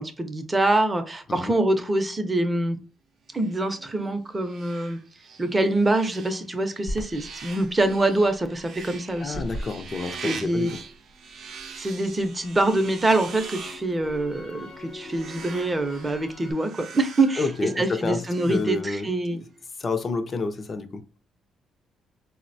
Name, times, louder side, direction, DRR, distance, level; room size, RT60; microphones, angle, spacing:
voice 1, 0.0-2.8 3.3-5.0 5.4-9.4 10.2-10.7 11.8-17.5 17.8-19.4, right 2 dB, 20° right, 0.6 m, -25 dB
sound 1, 3.3-19.2, right 5 dB, 65° right, 0.5 m, -43 dB
Crackle, 6.9-11.0 11.4-16.5, left 1 dB, 80° left, 0.8 m, -41 dB
voice 2, 9.2-10.8 17.4-19.4 19.8-21.0, left 3 dB, 40° left, 0.5 m, -29 dB
3.9 x 2.1 x 2.6 m
cardioid pair, 90°, 0 cm